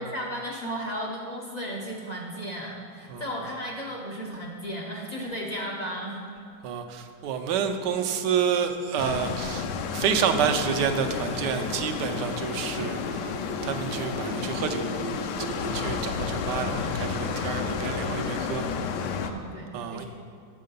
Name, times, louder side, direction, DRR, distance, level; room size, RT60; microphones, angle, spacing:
voice 1, 0.0-6.2 18.2-18.4 19.2-20.0, equal, 50° left, -1 dB, 0.5 m, -35 dB
voice 2, 6.6-18.7 19.7-20.1, right 7 dB, 75° right, 6 dB, 1.3 m, -29 dB
sound 1, 9.0-19.3, left 6 dB, 75° left, 1.1 m, -31 dB
sound 2, 11.0-16.3, right 2 dB, 60° right, 1.2 m, -40 dB
8.4 x 6.5 x 5.3 m, 2.4 s
omnidirectional pair, 1.9 m